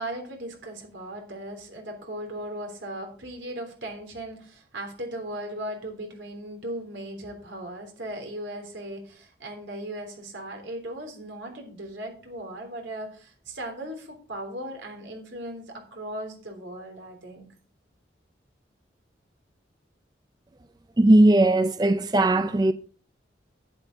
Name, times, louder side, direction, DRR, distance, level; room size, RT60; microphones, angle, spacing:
voice 1, 0.0-15.6 15.9-17.5, right 1 dB, 90° right, 3.4 m, -37 dB
voice 2, 21.0-22.7, right 1 dB, 20° right, 0.4 m, -18 dB
11.0 x 9.1 x 3.9 m
head